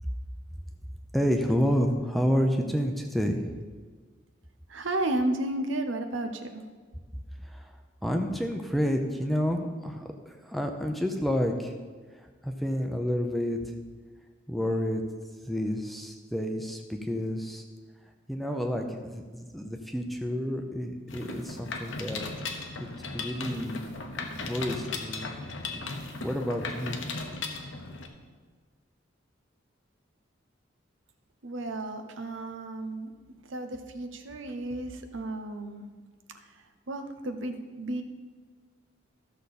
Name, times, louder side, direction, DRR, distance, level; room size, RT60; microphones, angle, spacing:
voice 1, 1.1-3.4 7.4-7.7 8.0-11.7 12.2-13.6 14.5-15.0 15.4-17.6 18.3-22.2 22.8-22.9 23.1-23.8 24.4-25.3 25.7-27.0, equal, ahead, 3 dB, 0.6 m, -29 dB
voice 2, 4.7-6.7 31.4-35.9 36.4-38.0, right 1 dB, 80° right, 7 dB, 0.9 m, -33 dB
Mechanisms, 21.1-28.1, left 3 dB, 80° left, 1.0 m, -37 dB
14.0 x 6.7 x 4.2 m, 1.4 s
head